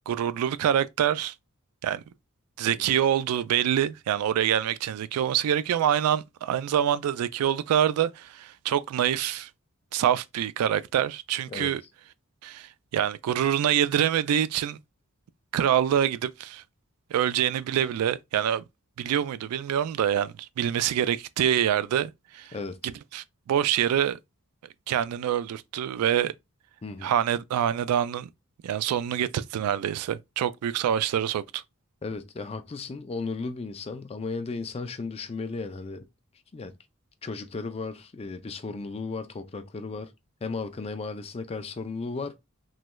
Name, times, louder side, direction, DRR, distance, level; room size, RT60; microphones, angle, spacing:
voice 1, 0.1-1.3 1.8-2.0 2.6-9.5 9.9-11.8 12.4-14.8 15.5-16.6 17.1-18.6 19.0-22.5 22.8-24.2 24.9-26.3 27.0-28.3 28.6-31.6, right 10 dB, 85° right, 0.3 m, -26 dB
voice 2, 26.8-27.1 32.0-36.1 36.5-36.7 37.2-40.1 40.4-42.4, left 4 dB, 25° left, 0.4 m, -35 dB
3.1 x 3.0 x 2.2 m
head